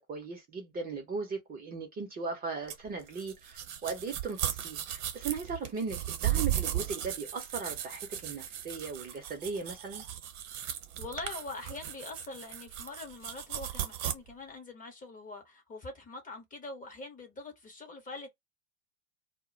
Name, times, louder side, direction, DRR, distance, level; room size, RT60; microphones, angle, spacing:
voice 1, 0.0-10.0, right 4 dB, 20° right, 0.6 m, -38 dB
sound 1, 2.7-14.1, right 11 dB, 50° right, 0.9 m, -36 dB
voice 2, 11.0-18.3, left 3 dB, 20° left, 0.7 m, -43 dB
2.1 x 2.1 x 3.7 m
hypercardioid pair, 95°, 46 cm